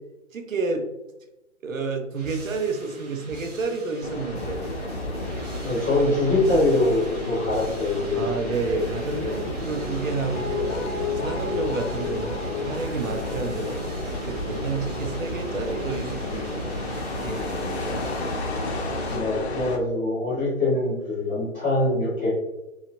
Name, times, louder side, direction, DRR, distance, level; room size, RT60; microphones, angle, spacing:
voice 1, 0.3-0.9 1.6-4.6 8.1-10.7 11.1-13.8 14.3-18.1, right 4 dB, 90° right, 5 dB, 0.6 m, -30 dB
sound 1, 2.2-19.2, right 2 dB, 30° right, 0.7 m, -36 dB
sound 2, 4.0-19.8, left 3 dB, 55° left, 0.5 m, -33 dB
voice 2, 5.6-8.2 9.2-9.3 19.1-22.3, left 2 dB, 10° left, -8 dB, 0.5 m, -23 dB
Guitar, 9.7-16.7 17.0-17.1, left 5 dB, 85° left, 0.9 m, -34 dB
2.8 x 2.4 x 2.8 m, 0.95 s
figure-of-eight pair, 140°, 39 cm